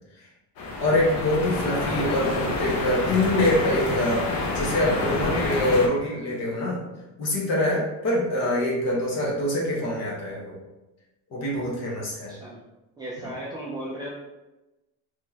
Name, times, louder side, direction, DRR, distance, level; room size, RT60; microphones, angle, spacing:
sound 1, 0.6-5.9, left 2 dB, 65° left, 0.9 m, -28 dB
voice 1, 0.8-6.8 7.2-10.5 11.3-12.3, left 1 dB, 45° left, -4 dB, 1.2 m, -25 dB
voice 2, 12.3-12.6 13.0-14.1, right 1 dB, 10° right, -7 dB, 0.3 m, -35 dB
4.4 x 3.0 x 2.8 m, 1.0 s
cardioid pair, 175°, 37 cm